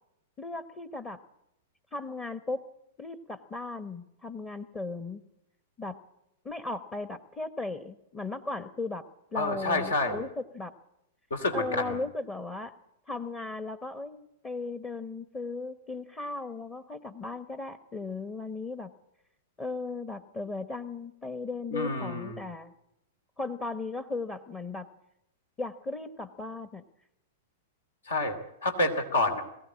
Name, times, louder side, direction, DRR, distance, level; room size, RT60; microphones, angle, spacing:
voice 1, 0.4-1.2 1.9-2.6 3.0-5.2 5.8-6.0 6.4-9.1 9.3-10.7 11.5-12.7 13.1-18.9 19.6-22.7 23.4-24.9 25.6-26.8, left 3 dB, 20° left, 11 dB, 1.0 m, -36 dB
voice 2, 9.3-10.2 11.3-12.0 21.7-22.4 28.0-29.4, left 2 dB, 75° left, 6 dB, 2.6 m, -28 dB
21.5 x 16.0 x 8.7 m, 0.83 s
figure-of-eight pair, 100°, 0 cm